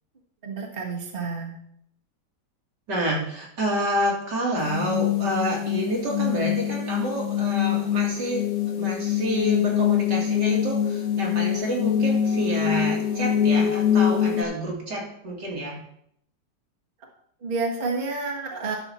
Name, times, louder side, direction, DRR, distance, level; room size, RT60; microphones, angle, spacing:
voice 1, 0.4-1.5 17.4-18.8, right 4 dB, 30° right, -1 dB, 1.5 m, -29 dB
voice 2, 2.9-8.4 8.8-15.8, right 1 dB, 70° right, -2 dB, 2.9 m, -28 dB
sound 1, 4.6-14.4, left 9 dB, 60° left, 1.4 m, -24 dB
11.0 x 6.9 x 4.2 m, 0.70 s
omnidirectional pair, 1.9 m